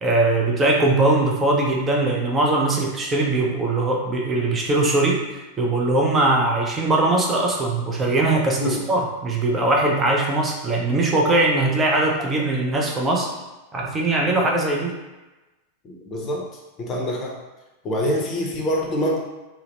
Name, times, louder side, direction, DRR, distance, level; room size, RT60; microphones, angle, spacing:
voice 1, 0.0-13.3 13.7-14.9, right 2 dB, 20° right, -1 dB, 0.5 m, -21 dB
voice 2, 15.8-16.5 16.8-17.4 17.8-19.2, equal, 30° left, -1 dB, 0.6 m, -25 dB
2.8 x 2.1 x 2.9 m, 1.1 s
figure-of-eight pair, 90°, 0 cm